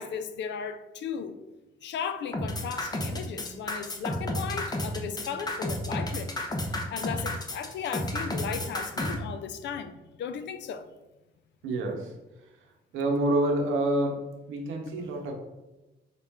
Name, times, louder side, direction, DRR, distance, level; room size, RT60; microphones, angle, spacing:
voice 1, 0.0-1.4 1.8-6.3 6.6-10.9, left 7 dB, 65° left, 10 dB, 0.5 m, -36 dB
sound 1, 2.3-9.1, left 1 dB, 20° left, 0.7 m, -31 dB
voice 2, 11.6-12.0 12.9-14.2 14.5-15.3, right 1 dB, 90° right, 2 dB, 0.9 m, -27 dB
5.3 x 2.4 x 3.5 m, 1.1 s
cardioid pair, 90°, 20 cm